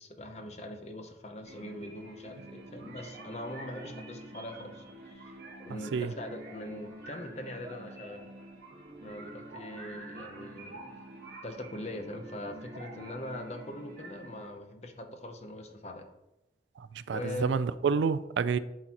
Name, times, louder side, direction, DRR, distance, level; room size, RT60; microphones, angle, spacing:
voice 1, 0.0-5.3 5.6-8.2 9.0-10.8 11.4-16.1 17.1-17.5, left 1 dB, 40° left, 0.8 m, -42 dB
sound 1, 1.4-14.5, right 1 dB, 65° right, 1.3 m, -47 dB
voice 2, 17.1-18.6, right 5 dB, 85° right, 0.3 m, -28 dB
11.5 x 3.9 x 2.9 m
head